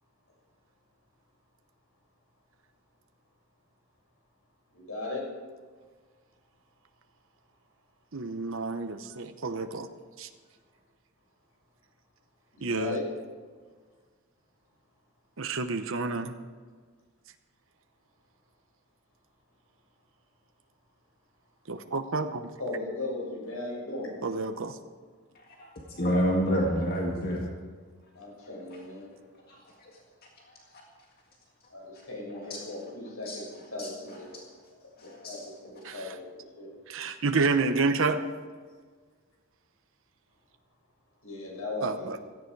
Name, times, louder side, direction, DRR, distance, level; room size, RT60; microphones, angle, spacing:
voice 1, 4.7-5.3 12.5-13.1 22.6-24.2 28.1-29.1 31.7-34.3 35.0-36.7 41.2-42.1, left 2 dB, 85° left, -1 dB, 5.8 m, -37 dB
voice 2, 8.1-9.9 10.2-10.3 12.6-13.0 15.4-16.3 21.7-22.5 24.2-24.8 35.8-36.0 36.9-38.2 41.8-42.2, right 4 dB, 65° right, 7 dB, 0.9 m, -29 dB
voice 3, 25.6-27.5 29.5-30.6 32.5-32.6 33.3-33.4 33.8-34.4 35.0-35.4 35.8-35.9, equal, 45° left, -1 dB, 1.9 m, -30 dB
17.0 x 14.0 x 4.7 m, 1.5 s
head